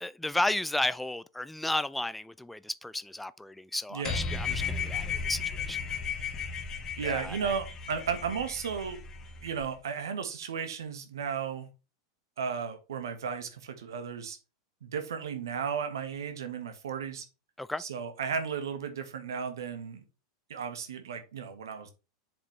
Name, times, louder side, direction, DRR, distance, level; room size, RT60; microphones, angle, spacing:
voice 1, 0.0-5.8 7.0-7.4 17.6-17.8, left 1 dB, 5° left, 0.3 m, -33 dB
sound 1, 4.0-9.6, left 5 dB, 25° left, 1.4 m, -35 dB
voice 2, 7.0-9.0 9.4-11.7 12.4-14.4 14.8-17.2 17.8-20.0 20.5-21.9, right 6 dB, 70° right, 1.4 m, -34 dB
7.2 x 5.1 x 3.2 m
figure-of-eight pair, 90°, 2 cm